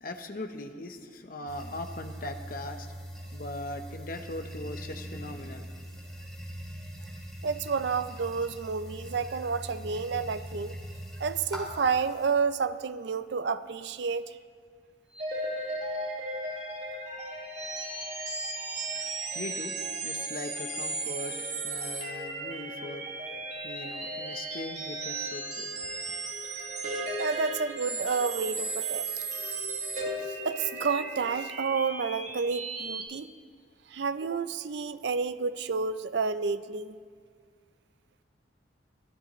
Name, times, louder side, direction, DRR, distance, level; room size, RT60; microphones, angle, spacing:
voice 1, 0.0-2.9 3.3-5.7 18.8-23.4 23.6-26.0, left 2 dB, 50° left, 6 dB, 0.9 m, -40 dB
sound 1, 1.5-12.3, equal, ahead, 3.0 m, -42 dB
voice 2, 7.4-10.8 11.2-14.4 27.2-29.1 30.4-33.3 33.9-37.0, right 5 dB, 65° right, 13 dB, 0.5 m, -30 dB
sound 2, 15.1-33.0, right 2 dB, 40° right, 1.9 m, -35 dB
22.5 x 12.5 x 3.1 m, 2.1 s
head